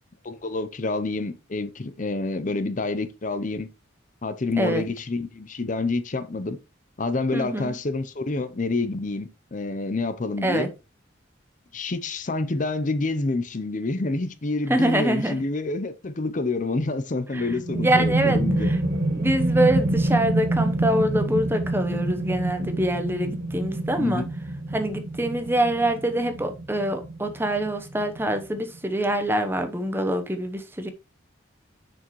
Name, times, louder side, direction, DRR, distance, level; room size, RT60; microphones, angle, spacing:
voice 1, 0.2-3.7 4.2-6.6 7.0-10.7 11.7-18.7 24.0-24.3, left 3 dB, 40° left, 0.6 m, -28 dB
voice 2, 7.3-7.7 10.4-10.7 14.7-15.4 17.3-17.4 17.7-18.8 19.1-24.2 24.7-30.9, right 1 dB, 10° right, 0.9 m, -25 dB
sound 1, 17.4-28.8, right 2 dB, 55° right, 1.2 m, -27 dB
7.1 x 6.2 x 3.1 m
head